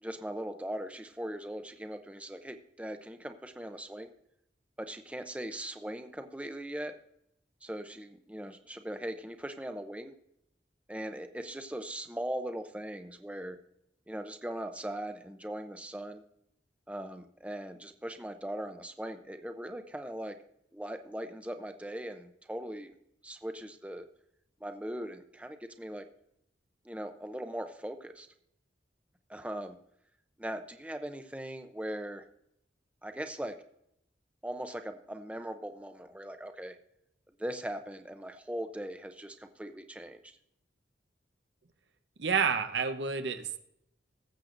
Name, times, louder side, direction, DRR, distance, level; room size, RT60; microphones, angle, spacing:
voice 1, 0.0-4.1 4.8-6.9 7.6-10.1 10.9-13.6 14.1-16.2 16.9-20.4 20.7-22.9 23.2-24.0 24.6-26.1 26.8-28.3 29.3-29.8 30.4-32.3 33.0-33.6 34.4-36.8 37.4-40.3, right 1 dB, 5° right, 7 dB, 0.6 m, -40 dB
voice 2, 42.2-43.6, right 6 dB, 80° right, 9 dB, 0.8 m, -29 dB
20.0 x 7.6 x 2.5 m, 0.77 s
head